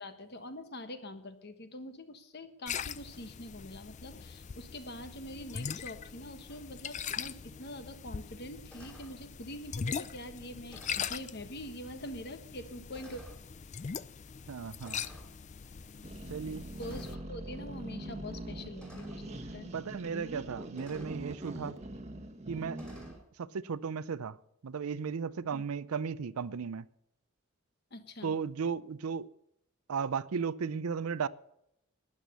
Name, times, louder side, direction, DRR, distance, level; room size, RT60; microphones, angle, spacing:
voice 1, 0.0-13.2 16.8-19.7 25.5-25.6 27.9-28.3, left 1 dB, 50° left, 1.3 m, -45 dB
sound 1, 2.7-17.1, left 7 dB, 35° left, 0.4 m, -41 dB
sound 2, 6.5-6.7 8.7-9.2 10.7-11.2 12.1-12.2 12.9-13.4 14.8-15.3 16.8-17.3 18.8-19.3 20.8-21.2 22.7-23.2, equal, 5° left, 3.0 m, -52 dB
voice 2, 14.5-15.0 16.3-16.6 19.7-21.8 22.5-22.8 23.4-24.4 24.6-26.8 28.2-29.3 29.9-31.3, right 6 dB, 85° right, 0.5 m, -35 dB
sound 3, 16.0-23.2, right 1 dB, 30° right, 1.2 m, -43 dB
12.5 x 9.9 x 6.8 m
head